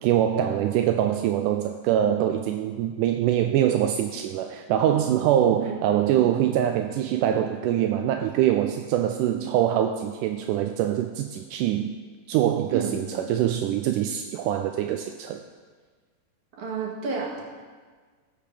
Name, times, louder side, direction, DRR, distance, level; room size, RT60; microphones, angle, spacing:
voice 1, 0.0-11.9 12.3-15.4, right 11 dB, 80° right, 6 dB, 1.9 m, -24 dB
voice 2, 16.6-17.4, right 5 dB, 60° right, -2 dB, 2.9 m, -31 dB
17.5 x 6.7 x 5.0 m, 1.5 s
omnidirectional pair, 4.1 m